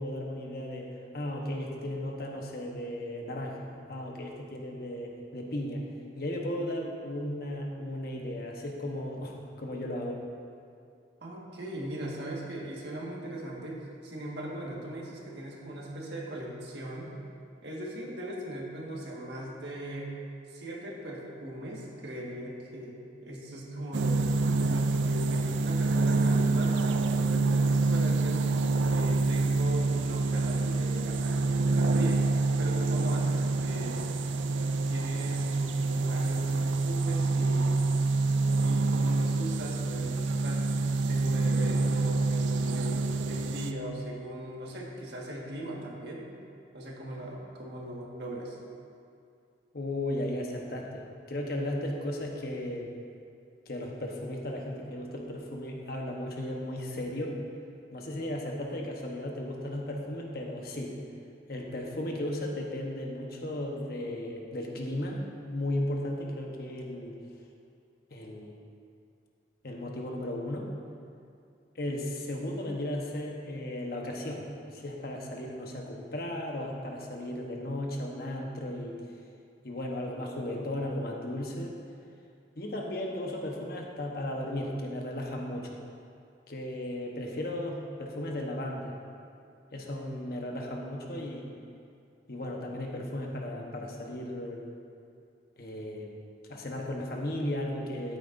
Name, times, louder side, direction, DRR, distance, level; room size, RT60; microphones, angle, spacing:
voice 1, 0.0-5.8 6.2-10.2 49.7-52.9 53.7-57.3 57.9-60.9 61.5-67.2 68.1-68.5 69.6-70.7 71.7-79.0 79.6-81.8 82.6-85.8 86.5-88.9 89.7-91.5 92.3-94.7 95.6-96.2 96.5-98.2, left 1 dB, 55° left, 0 dB, 1.1 m, -35 dB
voice 2, 11.2-17.2 17.6-20.1 20.5-23.0 23.2-24.2 24.6-28.5 28.8-32.3 32.6-34.0 34.9-37.7 38.6-40.7 41.0-46.3 46.7-48.6, right 1 dB, 65° right, -3 dB, 1.7 m, -39 dB
sound 1, 23.9-43.7, right 3 dB, 85° right, 0.5 m, -27 dB
12.5 x 9.3 x 2.6 m, 2.4 s
head